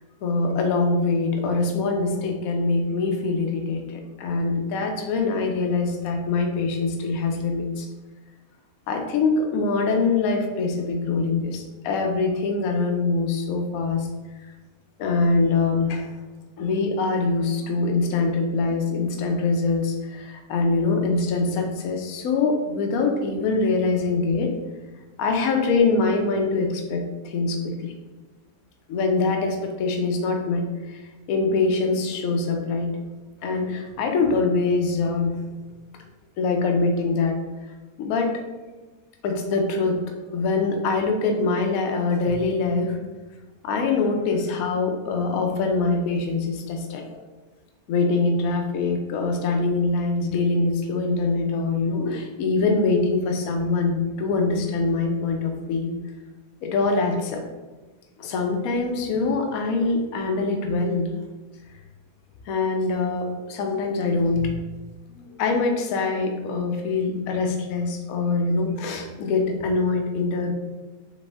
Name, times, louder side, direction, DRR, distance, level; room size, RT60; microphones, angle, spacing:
voice 1, 0.2-7.9 8.9-14.1 15.0-16.1 16.6-24.6 25.2-27.9 28.9-31.0 31.3-33.0 33.4-35.4 36.4-37.4 38.0-38.4 39.2-43.0 43.6-47.2 47.9-55.9 56.6-57.4 58.2-61.2 62.5-64.6 65.1-70.5, left 3 dB, 65° left, 3 dB, 1.0 m, -24 dB
4.2 x 3.3 x 3.4 m, 1.2 s
omnidirectional pair, 1.8 m